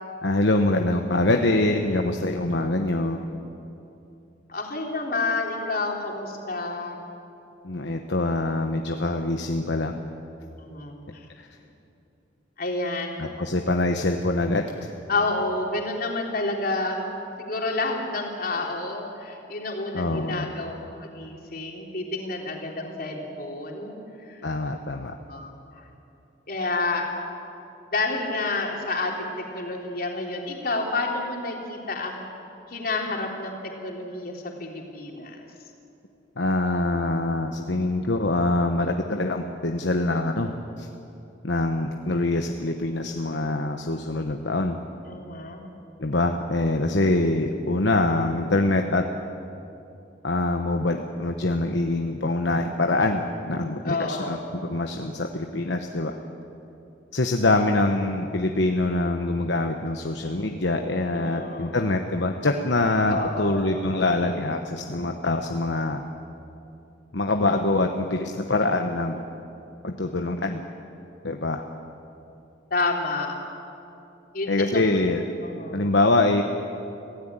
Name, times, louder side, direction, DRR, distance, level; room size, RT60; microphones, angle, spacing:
voice 1, 0.2-3.3 7.6-10.0 13.2-14.6 19.9-20.5 24.4-25.1 36.4-40.5 40.8-40.9 41.4-44.8 46.0-49.1 50.2-56.1 57.1-66.0 67.1-69.2 69.8-70.6 71.2-71.6 74.5-75.2 75.7-76.4, left 2 dB, 70° left, 4 dB, 1.1 m, -24 dB
voice 2, 4.5-7.0 10.6-11.3 12.6-13.2 15.1-17.0 17.4-20.7 21.0-24.0 24.3-24.4 25.3-25.8 26.5-27.1 27.9-32.2 32.7-33.6 33.8-35.4 45.1-45.6 53.8-54.4 61.1-61.8 63.1-63.6 72.7-73.3 74.3-74.8 75.4-75.8, left 3 dB, 50° left, 0 dB, 3.6 m, -29 dB
26.0 x 16.5 x 9.0 m, 2.8 s
head